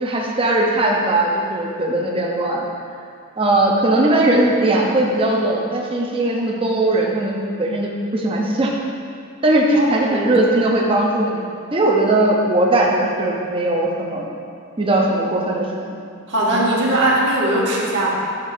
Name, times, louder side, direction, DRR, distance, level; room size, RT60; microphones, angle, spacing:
voice 1, 0.0-2.6 3.4-8.7 9.4-11.4 11.7-14.2 14.8-15.8 16.5-16.6, right 2 dB, 25° right, -2 dB, 0.6 m, -19 dB
voice 2, 9.7-10.5 16.3-18.3, right 1 dB, 60° right, -5 dB, 1.3 m, -20 dB
7.3 x 3.6 x 5.0 m, 2.4 s
head